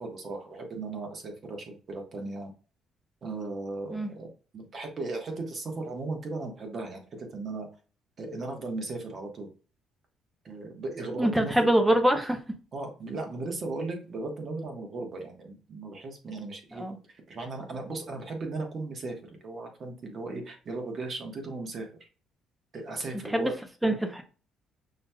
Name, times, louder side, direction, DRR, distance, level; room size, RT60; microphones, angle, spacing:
voice 1, 0.0-2.5 3.2-4.3 4.5-7.7 8.2-9.5 10.4-11.7 12.7-21.9 22.7-23.5 23.8-23.9, right 3 dB, 40° right, 1.2 m, -36 dB
voice 2, 11.2-12.4 16.7-17.0 23.3-23.5 23.8-24.2, right 1 dB, 5° right, 0.7 m, -24 dB
5.5 x 2.8 x 2.2 m
cardioid pair, 110°, 0 cm